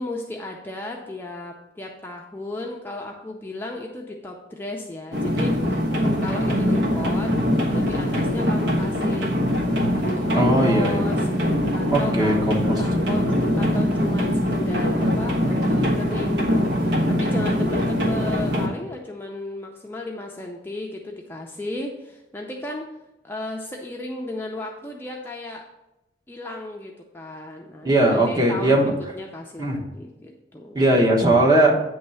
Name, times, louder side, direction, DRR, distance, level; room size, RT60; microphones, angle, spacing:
voice 1, 0.0-5.8 6.2-7.3 7.6-9.4 9.9-11.3 11.7-12.4 12.8-22.9 23.2-25.6 26.3-30.9, left 2 dB, 10° left, 0 dB, 0.5 m, -35 dB
sound 1, 5.1-18.7, equal, 75° right, 1.2 m, -22 dB
voice 2, 10.3-11.2 11.9-12.6 12.9-13.1 27.8-28.9 29.6-29.8 30.7-31.7, right 1 dB, 20° right, -1 dB, 1.1 m, -19 dB
9.1 x 3.1 x 5.5 m, 0.93 s
head